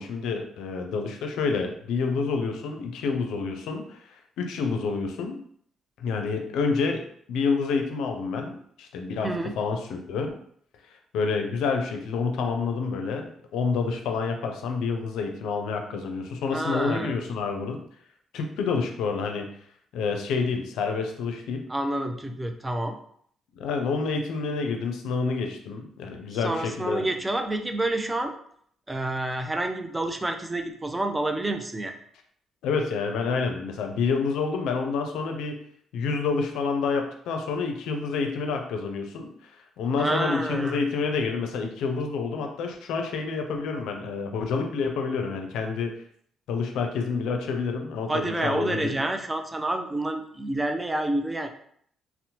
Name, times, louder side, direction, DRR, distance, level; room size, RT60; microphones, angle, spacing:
voice 1, 0.0-5.4 6.0-7.0 7.3-9.3 9.6-10.4 11.1-17.8 18.3-19.5 19.9-21.6 23.6-27.0 32.6-35.6 35.9-39.5 39.8-45.9 46.5-48.9, left 4 dB, 85° left, 4 dB, 0.4 m, -28 dB
voice 2, 16.5-17.1 21.7-23.0 26.4-28.3 28.9-32.0 40.0-40.8 48.1-51.5, right 1 dB, 15° right, 5 dB, 0.3 m, -28 dB
2.7 x 2.0 x 2.8 m, 0.63 s
cardioid pair, 90°, 0 cm